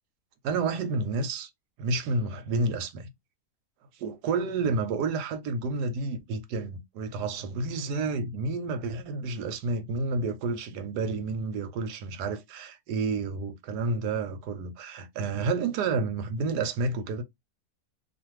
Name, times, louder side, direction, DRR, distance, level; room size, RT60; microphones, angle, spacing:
voice 1, 0.4-1.5 1.8-3.1 4.0-17.2, right 3 dB, 90° right, 1.2 m, -30 dB
2.5 x 2.5 x 3.0 m
omnidirectional pair, 1.7 m